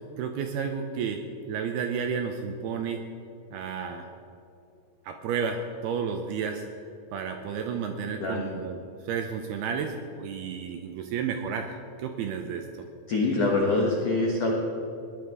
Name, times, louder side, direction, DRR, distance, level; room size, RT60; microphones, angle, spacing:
voice 1, 0.2-3.0 3.5-4.1 5.1-6.7 7.1-8.8 9.0-12.7, right 6 dB, 80° right, 5 dB, 2.3 m, -32 dB
voice 2, 13.1-14.5, left 2 dB, 70° left, -2 dB, 1.5 m, -24 dB
18.5 x 11.0 x 4.7 m, 2.7 s
omnidirectional pair, 5.2 m